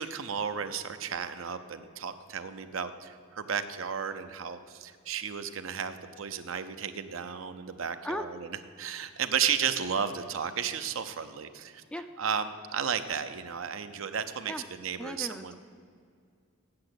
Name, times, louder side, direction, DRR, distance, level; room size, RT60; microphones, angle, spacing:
voice 1, 0.0-11.8 12.2-15.6, right 7 dB, 75° right, 10 dB, 0.6 m, -33 dB
voice 2, 15.0-15.6, left 1 dB, 5° left, 8 dB, 0.4 m, -36 dB
8.7 x 7.6 x 7.8 m, 2.2 s
head